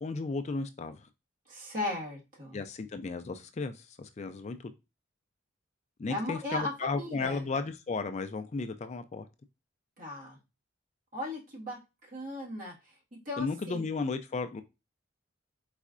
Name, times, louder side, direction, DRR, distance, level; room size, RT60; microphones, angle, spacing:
voice 1, 0.0-1.1 2.5-4.7 6.0-9.3 13.4-14.6, left 4 dB, 35° left, 0.4 m, -34 dB
voice 2, 1.5-2.6 6.1-7.4 10.0-10.4 11.1-12.7 13.2-13.8, left 1 dB, 45° right, 1.7 m, -37 dB
4.4 x 4.1 x 2.4 m
head